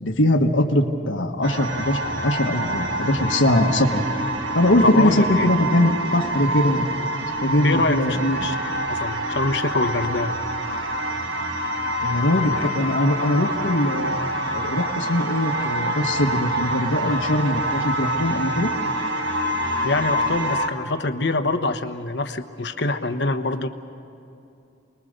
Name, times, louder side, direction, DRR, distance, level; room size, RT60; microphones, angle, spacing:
voice 1, 0.0-4.0 4.5-6.9 7.4-8.5 12.0-14.2 14.5-18.7, left 1 dB, 85° left, 3 dB, 1.5 m, -21 dB
sound 1, 1.4-20.7, right 1 dB, 70° right, 1.8 m, -26 dB
voice 2, 4.8-5.5 7.6-10.3 19.8-23.7, left 2 dB, 65° left, 8 dB, 1.1 m, -25 dB
29.0 x 21.5 x 6.7 m, 2.7 s
head